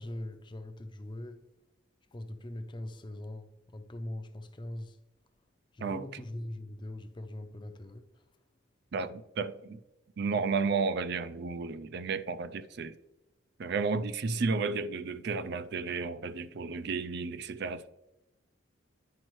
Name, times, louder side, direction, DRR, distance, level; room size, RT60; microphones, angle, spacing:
voice 1, 0.0-1.5 2.1-5.0 5.7-8.2, left 1 dB, 25° left, 0.5 m, -41 dB
voice 2, 5.8-6.2 8.9-9.8 10.2-13.0 13.6-17.9, right 4 dB, 55° right, 0.4 m, -32 dB
10.5 x 5.2 x 3.1 m
head